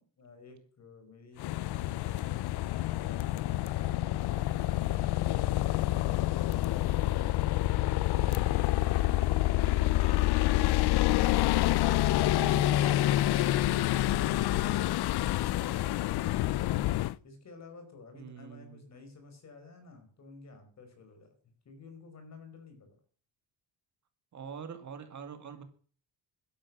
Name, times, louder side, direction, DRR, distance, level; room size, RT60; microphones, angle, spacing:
voice 1, 0.0-7.6 13.1-21.3 21.7-22.9, left 3 dB, 40° left, 6 dB, 5.2 m, -53 dB
sound 1, 1.4-17.1, left 15 dB, 65° left, 0.6 m, -27 dB
voice 2, 12.3-13.1 18.1-18.8 24.3-25.6, right 7 dB, 40° right, 8 dB, 2.2 m, -44 dB
12.5 x 11.5 x 7.5 m, 0.43 s
cardioid pair, 165°, 42 cm